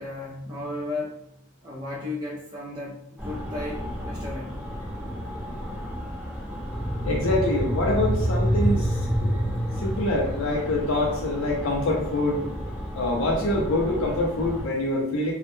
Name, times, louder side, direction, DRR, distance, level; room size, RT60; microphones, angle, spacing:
voice 1, 0.0-4.9, left 2 dB, 20° right, -5 dB, 0.3 m, -35 dB
sound 1, 3.2-14.6, equal, 5° right, 0.8 m, -29 dB
voice 2, 7.0-9.3 9.8-12.4 12.9-15.3, left 1 dB, 70° left, -1 dB, 0.4 m, -25 dB
2.1 x 2.1 x 2.9 m, 0.77 s
head